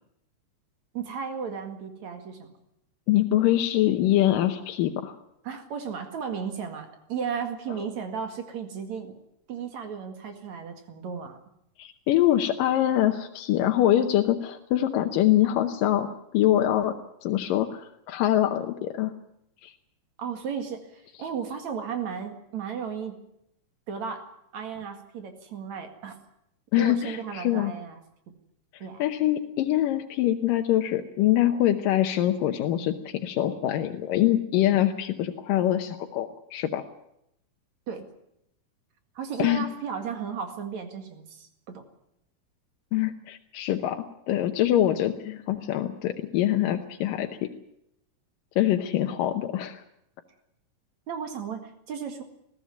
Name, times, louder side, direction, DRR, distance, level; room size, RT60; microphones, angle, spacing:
voice 1, 0.9-2.5 5.4-9.1 9.5-11.4 20.2-23.2 23.9-26.2 26.8-28.0 28.8-29.0 37.9-38.1 39.1-41.8 51.1-52.2, right 6 dB, 60° right, 6 dB, 3.2 m, -34 dB
voice 2, 3.1-5.1 11.8-16.1 16.3-16.9 17.2-19.1 19.6-19.7 26.7-27.7 29.0-36.8 39.4-39.6 42.9-47.3 48.6-49.8, left 13 dB, 90° left, 5 dB, 2.7 m, -24 dB
20.5 x 15.5 x 9.3 m, 0.78 s
omnidirectional pair, 3.8 m